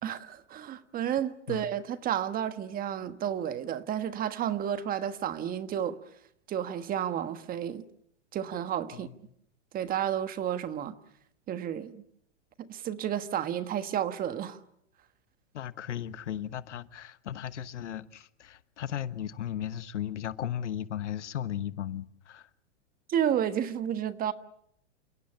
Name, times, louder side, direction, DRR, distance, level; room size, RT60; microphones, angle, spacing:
voice 1, 0.0-6.0 6.5-7.8 8.3-9.1 9.7-11.0 11.5-12.0 12.6-14.6 23.1-24.3, right 10 dB, 25° right, 1.4 m, -31 dB
voice 2, 15.5-22.5, left 10 dB, 85° left, 1.3 m, -36 dB
28.5 x 17.0 x 8.8 m
hypercardioid pair, 130°, 35 cm